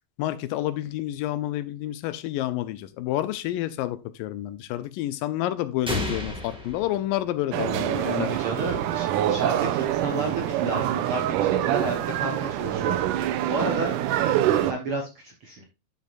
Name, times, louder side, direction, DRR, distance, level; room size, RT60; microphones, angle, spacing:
voice 1, 0.2-8.3, left 14 dB, 85° left, 2.3 m, -29 dB
sound 1, 5.9-7.8, left 1 dB, 5° right, 0.4 m, -32 dB
sound 2, 7.5-14.7, right 11 dB, 80° right, 2.1 m, -25 dB
voice 2, 8.0-13.9 14.6-15.6, right 3 dB, 60° right, 1.5 m, -32 dB
11.5 x 5.6 x 2.5 m
omnidirectional pair, 3.9 m